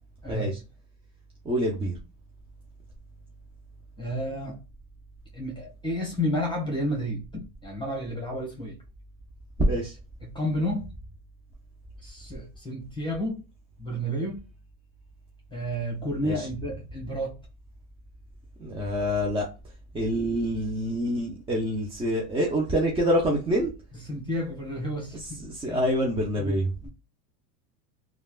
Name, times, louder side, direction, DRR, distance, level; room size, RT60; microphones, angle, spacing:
voice 1, 1.4-2.0 9.7-10.0 16.2-16.5 18.6-19.5 19.9-23.7 25.1-26.7, equal, 10° right, 0.4 m, -26 dB
voice 2, 4.0-4.6 5.3-8.8 10.2-10.9 12.0-13.4 13.8-14.4 15.5-17.4 23.9-25.8 26.3-26.6 26.8-26.9, equal, 10° left, 1.2 m, -31 dB
3.2 x 2.4 x 2.3 m
hypercardioid pair, 100°, 50 cm